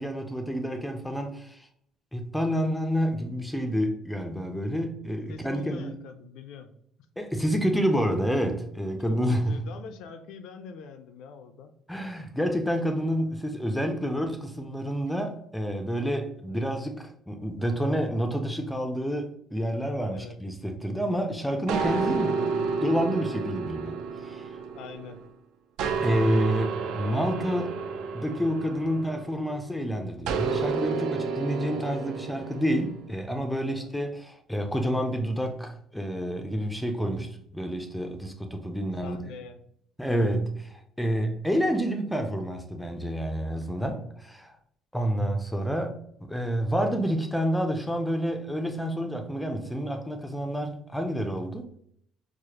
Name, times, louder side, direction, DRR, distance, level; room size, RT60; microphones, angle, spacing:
voice 1, 0.0-1.7 2.1-5.9 7.2-9.6 11.9-22.4 22.8-24.0 24.2-24.5 26.0-27.7 28.1-39.3 40.0-40.5 41.0-44.5 44.9-45.9 46.2-51.6, equal, 5° left, 0.4 m, -29 dB
voice 2, 5.3-6.7 9.1-11.7 16.5-16.7 20.1-20.4 24.7-25.2 33.6-34.0 39.0-39.6 40.1-40.3, left 6 dB, 70° left, 0.4 m, -44 dB
sound 1, 21.7-25.3 25.8-29.5 30.3-32.9, right 5 dB, 70° right, 0.4 m, -30 dB
4.7 x 2.1 x 2.8 m
cardioid pair, 165°, 0 cm